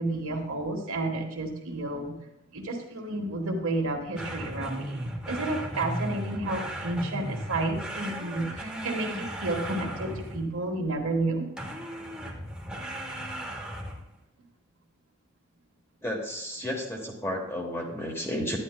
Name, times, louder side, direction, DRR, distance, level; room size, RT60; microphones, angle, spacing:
voice 1, 0.0-2.1 2.5-11.5, right 2 dB, 90° right, 2 dB, 1.3 m, -31 dB
sound 1, 4.2-10.6 11.6-14.1, right 1 dB, 5° right, 0.7 m, -36 dB
voice 2, 16.0-18.6, left 1 dB, 10° left, 1 dB, 1.1 m, -32 dB
9.9 x 9.8 x 2.2 m, 0.81 s
head